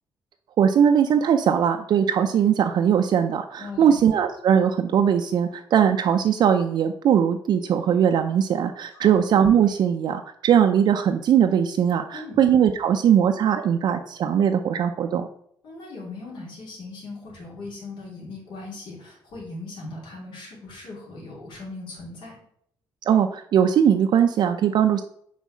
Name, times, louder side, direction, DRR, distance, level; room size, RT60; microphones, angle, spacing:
voice 1, 0.6-15.3 23.1-25.0, right 8 dB, 60° right, 6 dB, 0.4 m, -20 dB
voice 2, 3.6-4.0 8.9-9.2 12.1-12.4 15.6-22.4, left 3 dB, 70° left, -3 dB, 3.1 m, -39 dB
5.5 x 4.2 x 6.0 m, 0.70 s
cardioid pair, 145°, 8 cm